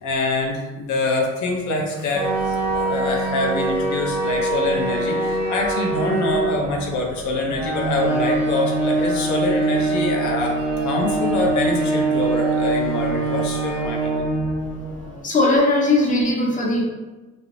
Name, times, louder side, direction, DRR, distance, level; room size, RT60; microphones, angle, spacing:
voice 1, 0.0-14.1, left 2 dB, 75° left, 0 dB, 0.5 m, -25 dB
sound 1, 2.1-15.2, right 2 dB, 5° right, 1.0 m, -23 dB
voice 2, 15.2-16.8, left 2 dB, 25° left, -2 dB, 0.6 m, -18 dB
2.4 x 2.0 x 2.9 m, 1.2 s
cardioid pair, 90°, 30 cm